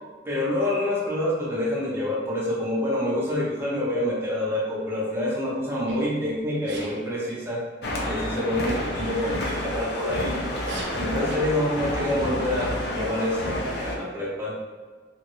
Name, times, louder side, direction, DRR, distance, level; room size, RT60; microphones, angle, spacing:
voice 1, 0.2-7.6 8.1-10.4 11.0-14.6, left 1 dB, 15° right, -6 dB, 0.7 m, -27 dB
Sneeze, 5.9-6.1 6.7-7.0 9.5-9.7 10.5-11.4, right 2 dB, 75° right, 0.7 m, -38 dB
sound 1, 7.8-14.0, left 1 dB, 60° left, 0.5 m, -29 dB
3.0 x 2.5 x 3.0 m, 1.5 s
head